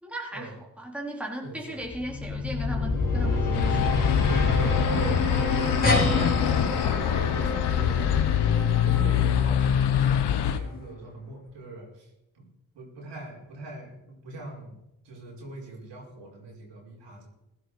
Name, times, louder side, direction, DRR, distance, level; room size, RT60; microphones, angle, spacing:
voice 1, 0.0-4.1, right 1 dB, 5° right, -1 dB, 3.3 m, -37 dB
voice 2, 1.4-1.9 4.3-8.2 8.8-12.5 12.7-14.8 15.0-17.3, right 3 dB, 75° right, -2 dB, 5.0 m, -41 dB
sound 1, 1.8-10.9, left 4 dB, 45° left, 4.1 m, -28 dB
sound 2, 3.5-10.6, left 9 dB, 65° left, 1.1 m, -25 dB
sound 3, 5.8-10.7, left 2 dB, 20° left, 4.4 m, -30 dB
16.0 x 11.0 x 4.9 m, 0.90 s
cardioid pair, 75°, 43 cm